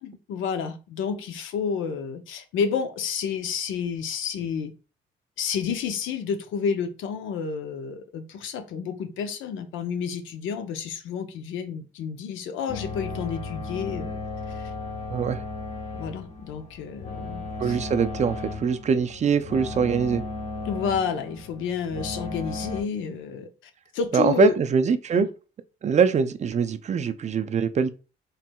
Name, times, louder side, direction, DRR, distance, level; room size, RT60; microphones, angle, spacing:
voice 1, 0.0-4.7 5.4-14.2 14.5-14.7 15.2-15.4 15.9-17.8 20.6-23.5 23.9-24.6 25.1-25.3, left 6 dB, 85° left, 0.6 m, -30 dB
sound 1, 12.7-22.8, left 3 dB, 35° left, 0.9 m, -35 dB
voice 2, 15.1-15.4 17.6-20.2 24.1-25.3 25.8-27.9, right 6 dB, 35° right, 0.4 m, -23 dB
4.4 x 3.2 x 2.2 m
cardioid pair, 90°, 20 cm